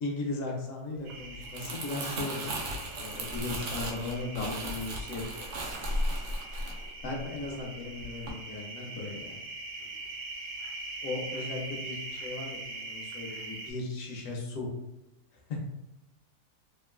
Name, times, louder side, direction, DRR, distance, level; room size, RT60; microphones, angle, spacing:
voice 1, 0.0-5.5 7.0-9.4 11.0-14.7 15.5-15.6, left 3 dB, 65° left, 0 dB, 0.9 m, -37 dB
sound 1, 1.0-13.7, right 2 dB, 85° right, 1.2 m, -42 dB
Crumpling crinkling, 1.3-7.7 8.0-8.3, right 1 dB, 70° right, 0.7 m, -36 dB
voice 2, 5.7-6.2 7.2-7.8 9.8-10.1, right 1 dB, 30° right, -6 dB, 0.5 m, -57 dB
3.0 x 2.4 x 2.3 m, 0.93 s
omnidirectional pair, 1.7 m